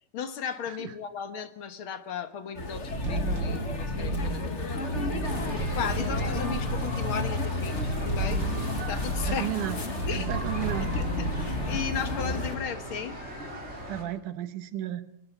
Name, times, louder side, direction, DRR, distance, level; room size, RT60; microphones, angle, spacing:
voice 1, 0.1-5.4 5.8-8.4 8.9-9.5 10.1-10.3 10.9-13.2, left 7 dB, 55° left, 9 dB, 1.8 m, -36 dB
sound 1, 2.5-12.6, left 2 dB, 25° left, 1.7 m, -32 dB
sound 2, 2.9-7.3 7.8-9.4 10.0-12.6, right 2 dB, 35° right, 4.4 m, -33 dB
sound 3, 5.2-14.0, equal, 20° right, 6.1 m, -40 dB
voice 2, 9.3-9.8 10.2-10.9 13.9-15.1, right 12 dB, 85° right, 11 dB, 2.6 m, -33 dB
22.5 x 20.0 x 7.2 m, 0.74 s
omnidirectional pair, 3.5 m